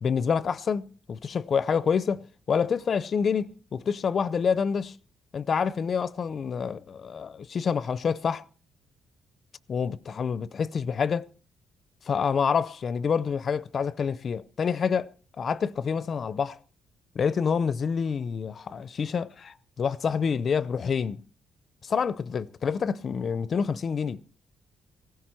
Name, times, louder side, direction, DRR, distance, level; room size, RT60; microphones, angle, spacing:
voice 1, 0.0-5.0 5.3-8.4 9.7-11.2 12.1-15.1 15.4-16.6 17.1-21.2 21.8-24.2, left 6 dB, 50° left, 0.6 m, -27 dB
16.0 x 14.5 x 4.4 m
cardioid pair, 90°, 0 cm